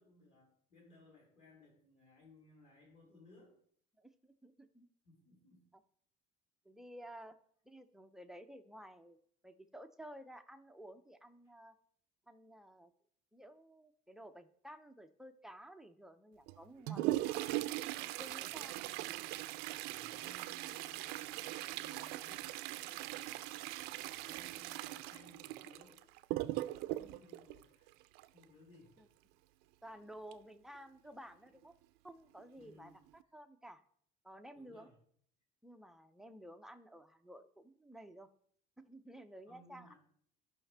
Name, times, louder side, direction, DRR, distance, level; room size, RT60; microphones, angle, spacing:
voice 1, 0.0-3.6 5.0-5.7 11.4-11.5 18.5-19.1 19.9-23.6 24.0-26.1 27.0-27.9 28.3-29.0 32.6-33.0 34.5-34.9 39.4-40.0, left 2 dB, 40° left, -3 dB, 4.1 m, -62 dB
voice 2, 4.0-4.9 6.6-7.4 7.6-9.2 9.4-11.8 12.3-12.9 13.3-17.5 18.0-18.8 26.9-27.4 29.0-29.1 29.8-31.7 32.0-32.9 33.3-33.8 34.2-34.9 35.6-38.3 38.8-39.9, right 1 dB, ahead, 7 dB, 0.4 m, -53 dB
Toilet flush, 16.5-28.4 30.3-30.4 30.7-30.8 31.6-31.7 32.4-32.6 33.1-33.2, right 17 dB, 65° right, 0.4 m, -40 dB
14.5 x 5.7 x 3.3 m, 0.63 s
cardioid pair, 170°, 18 cm